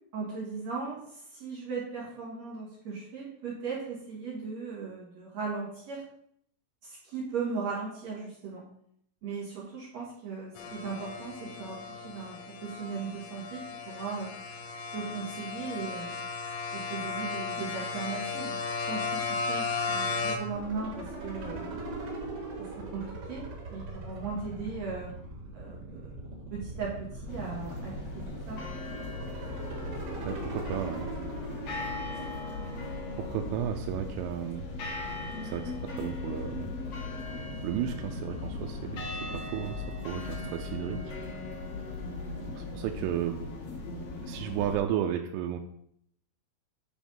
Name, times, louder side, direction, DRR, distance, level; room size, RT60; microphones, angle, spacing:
voice 1, 0.1-6.0 6.8-8.6 9.2-14.3 14.9-16.1 16.7-18.6 18.9-19.2 19.5-21.8 22.6-25.1 25.5-26.1 26.5-28.6, right 5 dB, 70° right, -5 dB, 1.6 m, -38 dB
sound 1, 10.6-20.4, left 4 dB, 80° left, 3.6 m, -35 dB
sound 2, 20.5-34.3, right 2 dB, 45° right, 2.6 m, -41 dB
sound 3, 27.3-44.8, left 2 dB, 65° left, 1.6 m, -38 dB
voice 2, 30.3-31.1 31.7-32.6 33.2-35.1 35.4-36.7 37.6-41.1 42.5-43.4 44.2-45.6, right 10 dB, 90° right, 4 dB, 3.2 m, -34 dB
9.0 x 5.1 x 5.3 m, 0.70 s
omnidirectional pair, 5.8 m